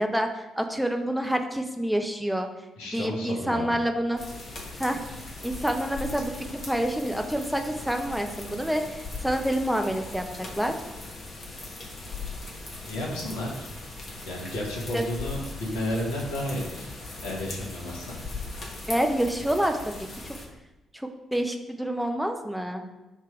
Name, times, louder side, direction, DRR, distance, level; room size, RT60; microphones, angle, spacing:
voice 1, 0.0-2.5 2.8-4.2 4.8-5.0 5.4-10.7 14.9-15.0 18.9-19.8 20.9-22.9, equal, ahead, 4 dB, 0.5 m, -27 dB
voice 2, 2.8-3.7 12.8-13.7 14.2-16.9 17.2-18.2, left 1 dB, 70° left, -3 dB, 1.0 m, -32 dB
sound 1, 4.2-20.5, left 3 dB, 35° left, 1.1 m, -39 dB
3.5 x 2.9 x 4.6 m, 1.0 s
figure-of-eight pair, 40°, 0 cm